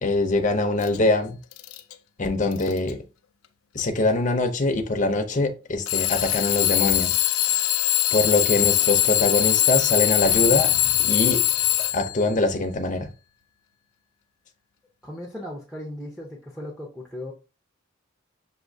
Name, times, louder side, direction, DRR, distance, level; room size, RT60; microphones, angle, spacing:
voice 1, 0.0-1.4 2.2-3.0 3.7-7.2 8.1-10.7 11.0-11.4 11.9-13.1, left 2 dB, 35° left, 0.6 m, -23 dB
Alarm / Clock, 0.8-1.0 1.5-1.9 2.5-2.9 3.8-3.9 5.9-12.3, left 15 dB, 80° left, 0.4 m, -22 dB
sound 1, 9.9-12.8 13.0-13.1, right 2 dB, 45° right, 0.6 m, -42 dB
voice 2, 15.0-17.3, left 1 dB, 5° right, 0.7 m, -37 dB
6.2 x 2.7 x 2.7 m
head